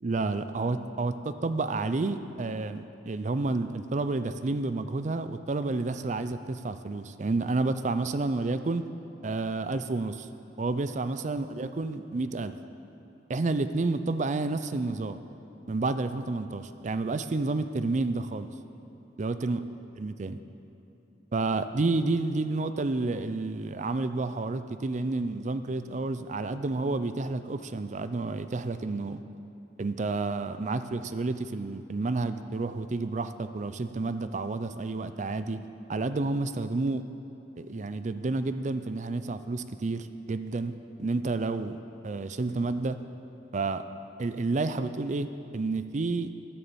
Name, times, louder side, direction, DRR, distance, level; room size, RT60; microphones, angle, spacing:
voice 1, 0.0-8.8 9.2-10.3 10.6-12.6 13.3-15.2 15.7-18.5 19.2-19.6 20.0-20.4 21.3-29.2 29.8-35.6 35.9-37.0 37.6-40.7 41.0-41.8 42.0-43.0 43.5-43.8 44.2-45.3 45.5-46.3, right 3 dB, 40° right, 11 dB, 0.5 m, -30 dB
13.0 x 7.1 x 7.0 m, 3.0 s
head